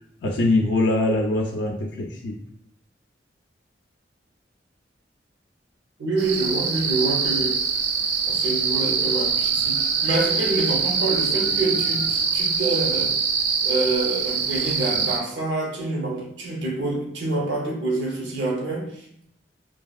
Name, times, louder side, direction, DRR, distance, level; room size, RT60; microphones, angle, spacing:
voice 1, 0.2-2.4, left 2 dB, 70° left, 0 dB, 0.4 m, -22 dB
voice 2, 6.0-7.6 8.2-13.1 13.6-19.2, right 2 dB, 75° right, -2 dB, 0.7 m, -27 dB
sound 1, 6.2-15.2, right 6 dB, 60° right, 0.3 m, -24 dB
2.8 x 2.6 x 2.3 m, 0.71 s
head